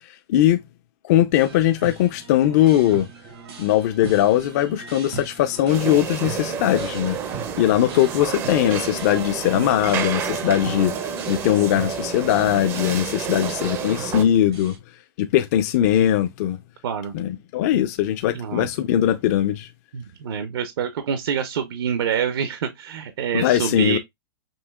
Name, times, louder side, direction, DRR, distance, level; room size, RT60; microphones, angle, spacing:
voice 1, 1.0-3.1 3.6-14.8 15.2-16.6 17.1-19.7 23.3-24.0, left 12 dB, 45° left, 0.4 m, -20 dB
sound 1, 1.3-14.8, right 4 dB, 85° right, 1.6 m, -40 dB
sound 2, 5.7-14.2, right 7 dB, 20° right, 0.4 m, -29 dB
voice 2, 16.8-17.1 18.3-18.7 19.9-24.0, right 7 dB, 70° right, 0.7 m, -26 dB
5.4 x 2.7 x 2.2 m
hypercardioid pair, 150°, 13 cm